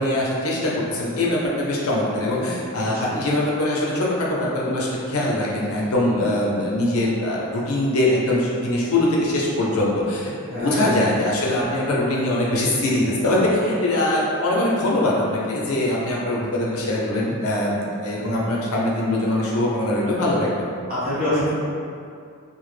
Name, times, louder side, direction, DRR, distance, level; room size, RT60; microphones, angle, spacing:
voice 1, 0.0-20.7, left 1 dB, 80° left, -4 dB, 0.5 m, -22 dB
voice 2, 2.8-3.2 10.5-11.0 18.4-18.5 20.9-21.5, left 1 dB, 45° right, -10 dB, 0.8 m, -26 dB
2.1 x 2.0 x 3.2 m, 2.4 s
head